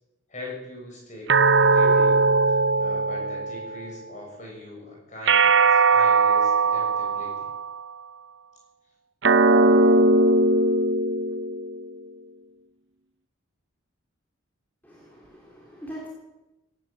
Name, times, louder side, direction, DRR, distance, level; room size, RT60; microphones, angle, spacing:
voice 1, 0.3-2.2 2.8-7.5, left 1 dB, 35° left, -1 dB, 6.9 m, -41 dB
sound 1, 1.3-3.9 5.3-7.8 9.2-11.8, right 3 dB, 55° right, 0.7 m, -19 dB
voice 2, 14.8-16.1, right 1 dB, 10° left, -4 dB, 3.1 m, -42 dB
17.0 x 11.0 x 7.6 m, 0.97 s
head